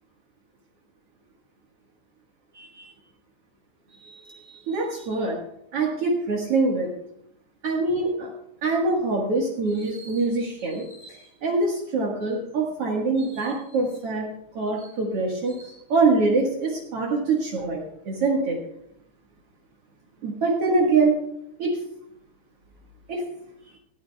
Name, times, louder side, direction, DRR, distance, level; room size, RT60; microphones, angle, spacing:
voice 1, 2.5-2.9 4.0-5.4 5.7-6.9 7.6-8.3 8.6-14.3 14.5-18.6 20.2-21.1 21.6-21.8 23.1-23.3, right 3 dB, 75° right, -2 dB, 1.3 m, -24 dB
20.0 x 15.0 x 2.3 m, 0.78 s
omnidirectional pair, 5.2 m